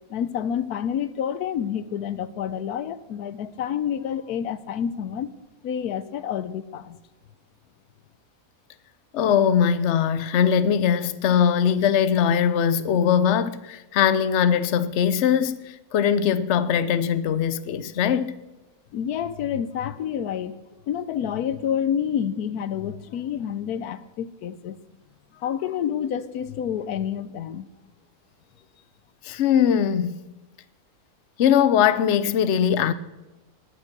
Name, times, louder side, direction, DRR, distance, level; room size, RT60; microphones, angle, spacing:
voice 1, 0.1-5.3 5.6-7.0 18.9-20.5 20.9-24.8 25.3-27.7, left 9 dB, 85° left, 1.2 m, -28 dB
voice 2, 9.1-18.3 29.2-30.2 31.4-32.9, left 8 dB, 55° left, 0.9 m, -21 dB
19.0 x 9.3 x 6.0 m
omnidirectional pair, 1.6 m